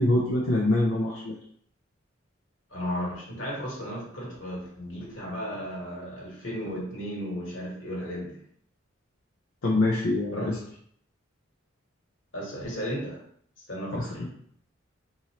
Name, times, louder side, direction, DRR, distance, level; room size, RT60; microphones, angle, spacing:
voice 1, 0.0-1.3 9.6-10.6 14.0-14.3, left 1 dB, 85° left, -4 dB, 0.6 m, -25 dB
voice 2, 2.7-8.4 10.3-10.5 12.3-13.2 13.7-14.2, equal, 65° left, -5 dB, 1.5 m, -34 dB
4.0 x 2.7 x 2.9 m, 0.64 s
head